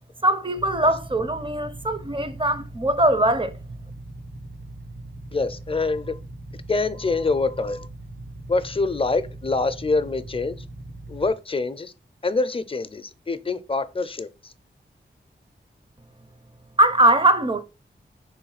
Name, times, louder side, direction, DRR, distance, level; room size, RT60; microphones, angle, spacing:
voice 1, 0.2-3.5 16.8-17.6, right 1 dB, 25° right, 0.6 m, -21 dB
Motorcycle / Idling, 0.6-11.3, right 2 dB, 80° right, 1.5 m, -40 dB
voice 2, 5.3-6.2 6.7-7.9 8.5-10.6 11.1-11.9 12.2-14.3, left 3 dB, 30° left, 0.5 m, -25 dB
3.5 x 3.1 x 4.7 m
cardioid pair, 50°, 19 cm